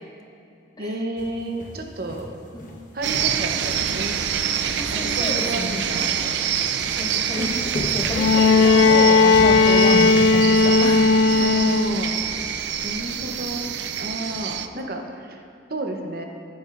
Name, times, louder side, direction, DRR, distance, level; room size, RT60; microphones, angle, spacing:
voice 1, 0.8-2.3 2.9-4.1 4.9-6.5 7.1-7.8 11.4-12.2 12.8-13.6 14.0-15.4 15.7-16.2, right 1 dB, 55° right, 3 dB, 0.8 m, -31 dB
sound 1, 1.2-2.8 3.1-6.2 6.9-11.6 12.0-12.1 13.1-13.2, left 1 dB, 45° left, 1.1 m, -36 dB
sound 2, 3.0-14.7, right 8 dB, 70° right, 0.4 m, -26 dB
voice 2, 4.8-5.8 7.0-7.5 7.9-11.5 13.2-13.3 14.7-14.9, left 1 dB, 20° left, 3 dB, 0.6 m, -30 dB
Bowed string instrument, 8.1-12.2 13.4-13.5, left 4 dB, 85° left, 0.3 m, -16 dB
13.5 x 9.4 x 2.5 m, 2.6 s
head